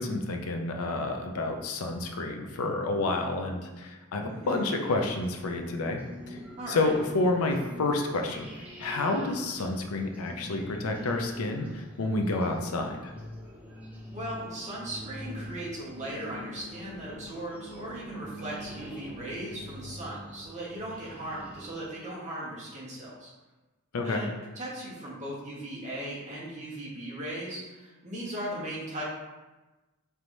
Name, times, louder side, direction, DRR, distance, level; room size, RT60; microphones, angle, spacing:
voice 1, 0.0-6.0 6.3-6.4 6.7-8.5 8.8-13.1 23.9-24.2, left 2 dB, 90° left, 3 dB, 0.5 m, -29 dB
voice 2, 4.3-4.7 6.6-6.9 14.1-23.3 24.0-24.3 24.5-29.0, right 1 dB, 35° right, -6 dB, 1.2 m, -38 dB
sound 1, 4.8-21.9, equal, 5° right, 0.7 m, -45 dB
4.4 x 3.4 x 2.6 m, 1.1 s
head